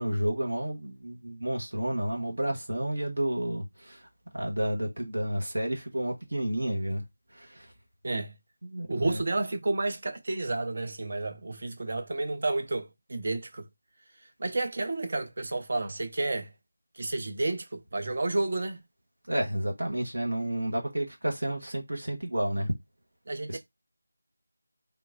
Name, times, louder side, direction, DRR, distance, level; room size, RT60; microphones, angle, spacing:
voice 1, 0.0-4.1 4.3-7.0 7.3-7.7 8.6-9.2 19.3-22.7 23.5-23.6, right 1 dB, 55° right, 1.1 m, -31 dB
voice 2, 8.0-8.3 8.9-13.7 14.4-16.5 16.9-18.8 23.3-23.6, right 2 dB, 40° right, 0.6 m, -31 dB
3.4 x 3.0 x 2.4 m
figure-of-eight pair, 165°, 0 cm